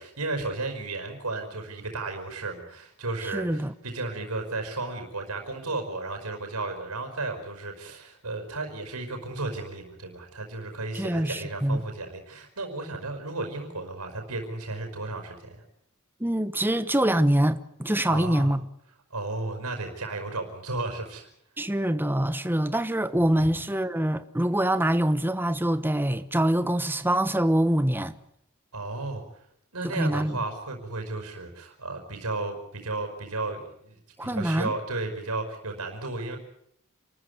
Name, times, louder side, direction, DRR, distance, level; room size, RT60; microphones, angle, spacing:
voice 1, 0.0-15.6 18.1-18.5 19.1-21.2 23.4-23.5 28.7-29.2 29.7-36.4, right 2 dB, 85° right, 5.2 m, -34 dB
voice 2, 3.3-3.7 10.9-11.8 16.2-18.7 21.6-28.1 29.8-30.4 34.2-34.7, right 1 dB, 10° right, 1.1 m, -25 dB
28.5 x 14.0 x 9.6 m
head